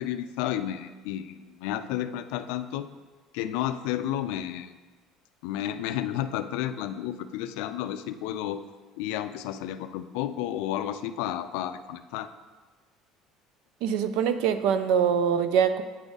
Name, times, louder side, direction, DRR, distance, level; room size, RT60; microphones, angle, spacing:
voice 1, 0.0-2.9 3.3-4.8 5.4-8.6 9.0-12.3, left 11 dB, 75° left, 10 dB, 0.3 m, -32 dB
voice 2, 13.8-15.8, right 7 dB, 65° right, 11 dB, 0.4 m, -23 dB
8.9 x 3.7 x 3.9 m, 1.3 s
cardioid pair, 180°, 0 cm